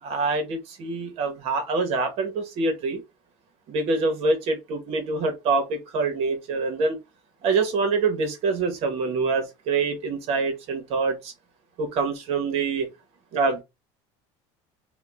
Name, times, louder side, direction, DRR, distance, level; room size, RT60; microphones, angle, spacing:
voice 1, 0.0-3.0 3.7-7.0 7.4-11.3 11.8-12.9 13.3-13.6, right 4 dB, 50° right, 1.3 m, -25 dB
3.6 x 2.4 x 3.5 m
cardioid pair, 160°, 13 cm